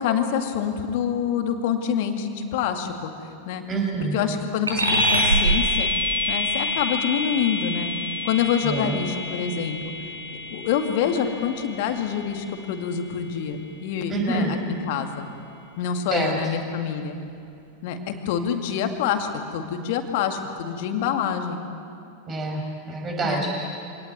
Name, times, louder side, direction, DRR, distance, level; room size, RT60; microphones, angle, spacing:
voice 1, 0.0-3.1 3.5-3.6 4.1-5.9 6.3-7.9 8.2-9.9 10.5-15.3 15.8-17.2 17.8-21.6 23.2-23.4, left 8 dB, 50° left, 5 dB, 2.3 m, -26 dB
voice 2, 3.7-4.2 8.6-9.0 14.1-14.5 16.1-16.4 22.3-22.6 22.9-23.5, right 3 dB, 25° right, 1 dB, 5.9 m, -26 dB
sound 1, 4.7-14.5, equal, 80° right, 4.6 m, -27 dB
25.0 x 18.5 x 9.5 m, 2.4 s
figure-of-eight pair, 90°, 0 cm